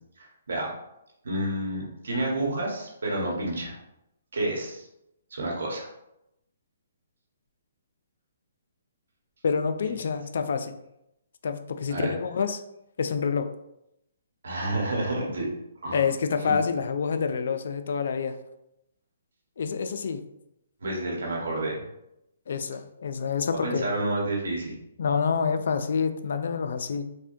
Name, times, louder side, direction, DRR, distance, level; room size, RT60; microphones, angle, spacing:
voice 1, 0.2-0.7 1.2-3.8 4.3-4.8 5.3-5.9 11.9-12.1 14.4-15.5 15.8-16.0 16.5-16.6 20.8-21.8 23.6-24.7, right 1 dB, 80° right, -2 dB, 1.3 m, -29 dB
voice 2, 9.4-10.8 11.4-12.6 13.0-13.5 15.9-18.3 19.6-20.2 22.5-23.9 25.0-27.0, left 6 dB, 60° left, 8 dB, 0.3 m, -27 dB
4.8 x 2.2 x 2.6 m, 0.84 s
hypercardioid pair, 165°, 0 cm